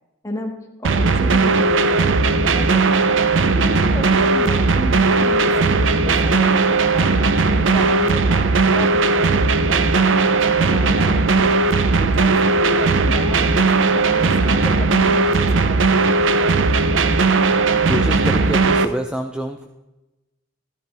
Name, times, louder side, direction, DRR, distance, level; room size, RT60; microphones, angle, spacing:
voice 1, 0.2-3.2 3.5-11.6 12.0-15.9, left 1 dB, 15° left, 1 dB, 1.7 m, -32 dB
sound 1, 0.8-18.8, right 3 dB, 75° right, 0.7 m, -17 dB
voice 2, 17.9-19.7, equal, 5° right, 4 dB, 0.5 m, -27 dB
13.5 x 13.0 x 3.4 m, 1.0 s
head